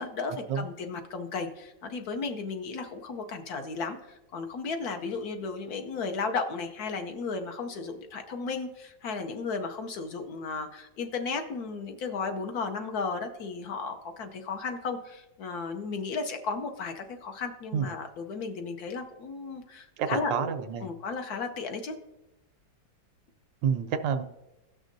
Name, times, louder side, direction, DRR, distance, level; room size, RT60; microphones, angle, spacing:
voice 1, 0.0-20.5 20.8-22.0, left 4 dB, 65° left, 5 dB, 1.1 m, -34 dB
voice 2, 20.0-20.9 23.6-24.2, right 7 dB, 85° right, 8 dB, 1.4 m, -28 dB
17.0 x 6.2 x 2.6 m, 0.99 s
omnidirectional pair, 2.0 m